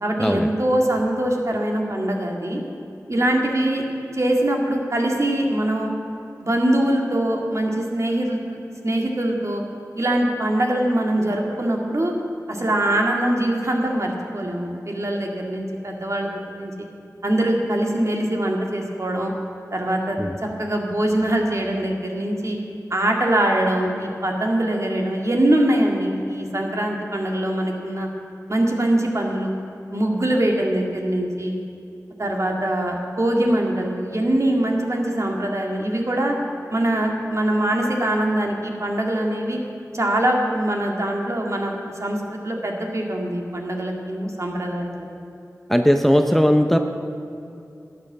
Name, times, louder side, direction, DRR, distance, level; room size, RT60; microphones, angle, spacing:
voice 1, 0.0-2.6 3.1-3.8 4.1-5.9 6.3-9.6 10.0-12.1 12.5-16.9 17.2-19.3 19.7-22.6 22.9-28.1 28.5-29.5 29.9-31.5 32.2-36.4 36.7-39.6 39.9-45.1, right 1 dB, 50° right, 0 dB, 2.0 m, -23 dB
voice 2, 45.7-46.8, equal, 5° left, 6 dB, 0.7 m, -18 dB
12.0 x 9.1 x 7.4 m, 2.6 s
wide cardioid pair, 40°, 6 cm